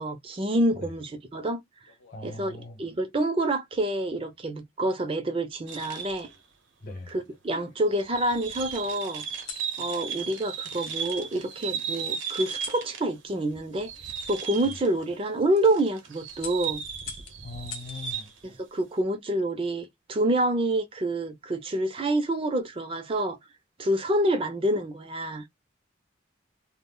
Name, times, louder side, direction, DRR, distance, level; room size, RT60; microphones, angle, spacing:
voice 1, 0.0-1.6 2.2-6.3 7.1-9.2 9.8-13.9 14.3-16.8 18.4-23.4 23.8-25.4, right 1 dB, 30° right, 0.4 m, -27 dB
sound 1, 1.9-3.0 4.0-4.4 5.7-6.5 7.1-8.0 9.2-9.7 11.1-11.2 12.5-12.9 14.7-14.8 15.3-15.6 16.4-18.0 19.5-19.9, left 7 dB, 90° left, 0.7 m, -45 dB
voice 2, 2.1-2.8 6.8-7.1 17.4-18.3, left 2 dB, 45° left, 0.8 m, -40 dB
sound 2, 5.7-6.3 7.1-7.2 7.9-13.2 13.5-15.1 15.6-18.4, right 7 dB, 75° right, 0.7 m, -36 dB
2.3 x 2.0 x 3.7 m
head